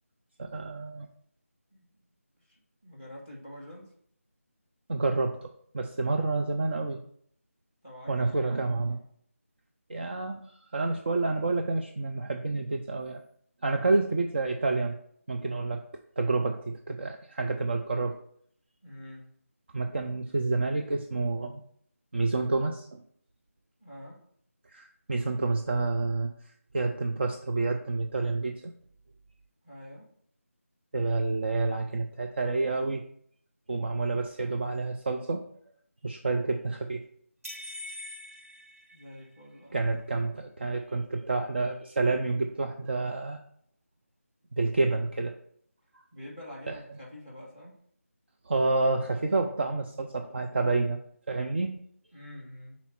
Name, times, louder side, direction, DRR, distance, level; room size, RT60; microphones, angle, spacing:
voice 1, 0.4-1.1 4.9-7.0 8.1-9.0 9.9-13.2 13.6-15.0 15.3-15.8 16.2-18.2 19.7-21.6 22.1-23.0 24.7-26.3 26.7-28.7 30.9-33.0 33.7-35.4 36.0-37.0 39.7-43.4 44.5-45.3 46.7-46.8 48.5-51.0 51.3-51.8, right 3 dB, 45° right, 4 dB, 0.5 m, -29 dB
voice 2, 2.4-3.9 7.8-9.0 18.8-19.3 23.8-24.2 29.6-30.1 38.9-39.8 46.1-47.8 48.8-49.0 52.1-52.8, equal, 20° right, -4 dB, 1.7 m, -47 dB
sound 1, 37.4-39.6, left 1 dB, 90° right, 1.9 m, -43 dB
5.6 x 4.2 x 4.2 m, 0.66 s
figure-of-eight pair, 165°, 8 cm